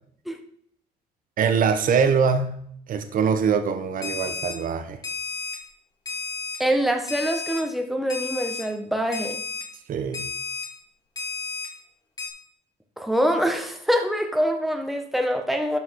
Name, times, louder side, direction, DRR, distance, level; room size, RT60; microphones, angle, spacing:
voice 1, 1.4-2.6 2.9-5.0 9.9-10.2, right 6 dB, 55° right, 8 dB, 1.4 m, -23 dB
Alarm, 4.0-4.5 5.0-5.5 6.1-6.6 7.1-7.6 8.1-8.6 9.1-9.6 10.1-10.6 11.2-11.7 12.2-12.3, left 4 dB, 20° left, 2.5 m, -32 dB
voice 2, 6.6-9.4 13.0-15.8, equal, ahead, 4 dB, 1.5 m, -24 dB
12.5 x 5.6 x 4.9 m, 0.65 s
cardioid pair, 110°, 17 cm